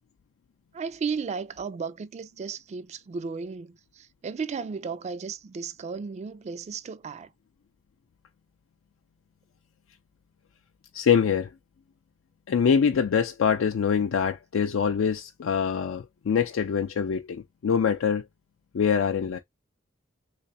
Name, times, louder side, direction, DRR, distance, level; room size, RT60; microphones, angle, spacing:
voice 1, 0.7-7.3, right 5 dB, 35° right, 0.3 m, -34 dB
voice 2, 10.9-11.5 12.5-18.2 18.7-19.4, left 7 dB, 80° left, 0.4 m, -24 dB
3.3 x 3.2 x 2.6 m
head